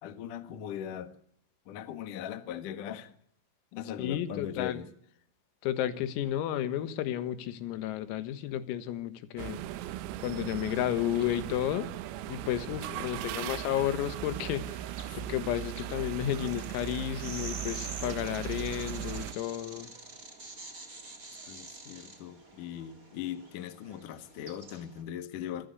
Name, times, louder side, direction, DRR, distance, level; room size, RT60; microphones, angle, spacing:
voice 1, 0.0-1.1 1.7-3.2 3.7-4.9 12.9-13.3 15.1-15.2 18.4-18.5 21.5-25.7, left 10 dB, 65° left, 2.1 m, -40 dB
voice 2, 4.0-4.8 5.6-9.6 10.2-11.9 12.3-14.9 15.3-19.9, left 12 dB, 85° left, 4.1 m, -32 dB
sound 1, 9.4-19.3, right 13 dB, 85° right, 3.9 m, -38 dB
sound 2, 12.0-25.0, right 2 dB, 20° right, 3.2 m, -48 dB
25.5 x 14.5 x 8.3 m
omnidirectional pair, 6.0 m